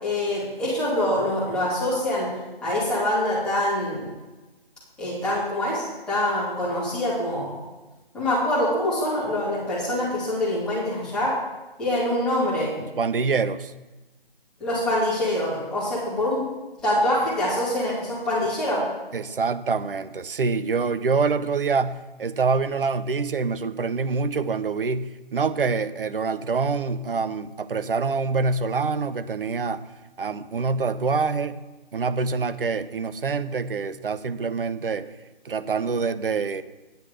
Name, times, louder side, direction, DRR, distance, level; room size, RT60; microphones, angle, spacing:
voice 1, 0.0-2.3 2.6-4.1 5.0-7.6 8.1-11.3 11.8-12.7 14.6-16.5 16.8-18.8, left 1 dB, 5° left, -9 dB, 1.7 m, -25 dB
voice 2, 13.0-13.7 19.1-29.8 30.2-31.6 31.9-35.1 35.4-36.6, right 4 dB, 65° right, 13 dB, 0.8 m, -25 dB
9.4 x 9.4 x 4.9 m, 1.1 s
hypercardioid pair, 170°, 30 cm